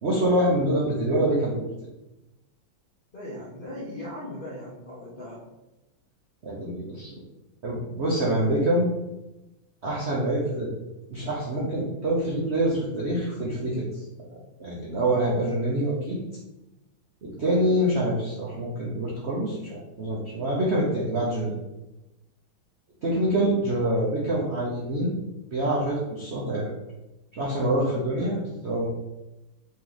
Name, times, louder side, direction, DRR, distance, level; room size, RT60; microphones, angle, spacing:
voice 1, 0.0-1.7 6.4-7.2 7.6-8.9 9.8-10.7 11.1-14.0 14.6-16.2 17.2-21.5 23.0-25.2 25.5-26.7 27.3-28.9, right 1 dB, 75° right, -4 dB, 0.6 m, -25 dB
voice 2, 3.1-5.4 28.1-28.4, left 1 dB, 65° left, -6 dB, 0.5 m, -38 dB
4.3 x 3.0 x 3.9 m, 1.0 s
omnidirectional pair, 2.3 m